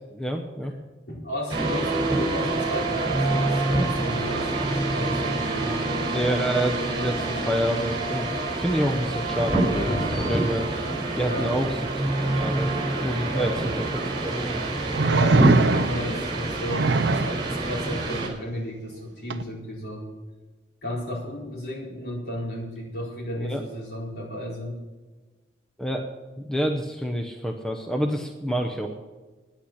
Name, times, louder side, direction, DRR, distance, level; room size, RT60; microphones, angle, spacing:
voice 1, 0.1-0.7 6.1-10.7 11.2-12.7 13.0-13.5 13.9-14.6 23.4-23.6 25.8-26.1 26.4-28.9, equal, 5° left, 3 dB, 0.7 m, -28 dB
voice 2, 1.1-5.8 11.2-11.5 13.3-13.6 15.1-20.1 20.8-24.8, equal, 60° left, -3 dB, 4.4 m, -33 dB
sound 1, 1.5-18.3, right 2 dB, 30° right, 4.2 m, -26 dB
sound 2, 6.7-11.1, left 1 dB, 30° left, 1.0 m, -35 dB
sound 3, 13.6-13.7 14.9-16.1 16.7-17.4 19.3-19.4, right 3 dB, 75° right, 0.6 m, -21 dB
9.9 x 9.0 x 8.6 m, 1.3 s
head